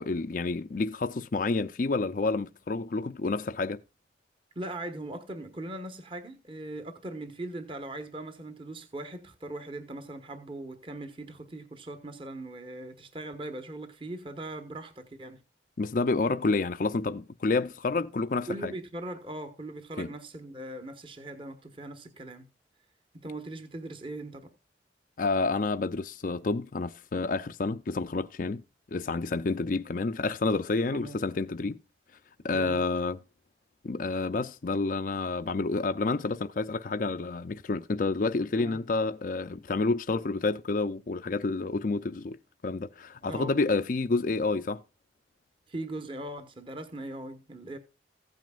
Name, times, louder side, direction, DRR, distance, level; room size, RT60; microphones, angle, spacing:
voice 1, 0.0-3.8 15.8-18.7 20.0-20.1 25.2-28.6 28.9-31.8 32.4-33.2 33.8-42.4 42.6-44.8, left 3 dB, 45° left, 0.5 m, -29 dB
voice 2, 4.5-15.4 18.5-22.5 23.1-24.5 30.9-31.2 32.5-32.8 38.6-38.8 43.3-43.5 45.7-47.8, right 2 dB, 30° right, 1.2 m, -40 dB
15.5 x 9.2 x 2.4 m
head